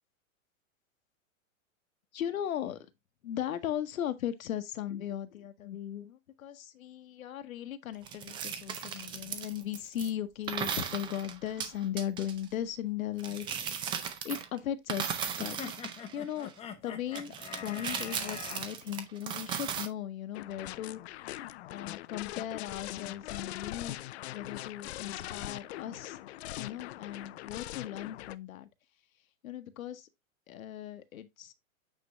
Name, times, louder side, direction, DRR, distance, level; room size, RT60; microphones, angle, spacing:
voice 1, 2.1-2.8 3.2-15.7 16.1-16.5 16.8-21.0 21.7-24.0 24.3-26.2 26.5-28.7 29.4-30.1 30.5-31.5, left 10 dB, 85° left, 1.1 m, -37 dB
sound 1, 8.1-10.1 10.5-12.4 13.2-14.6 14.9-16.5 17.2-19.9, right 8 dB, 10° right, 0.4 m, -37 dB
sound 2, 15.4-18.6, left 7 dB, 15° left, 0.9 m, -43 dB
sound 3, 20.3-28.3, left 15 dB, 55° left, 0.5 m, -42 dB
8.6 x 4.5 x 2.9 m
hypercardioid pair, 140°, 40 cm